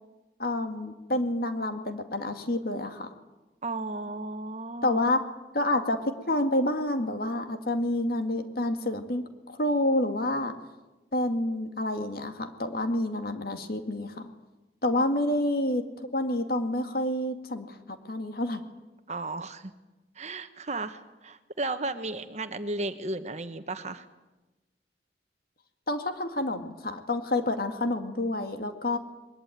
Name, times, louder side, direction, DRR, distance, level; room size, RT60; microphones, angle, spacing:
voice 1, 0.4-3.1 4.8-5.2 5.5-10.5 11.1-14.3 14.8-18.6 25.9-29.0, left 1 dB, 55° left, 7 dB, 2.2 m, -28 dB
voice 2, 3.6-5.0 14.9-15.0 19.1-19.7 20.2-24.1, right 2 dB, 40° right, 9 dB, 1.3 m, -34 dB
22.0 x 20.5 x 9.4 m, 1.1 s
head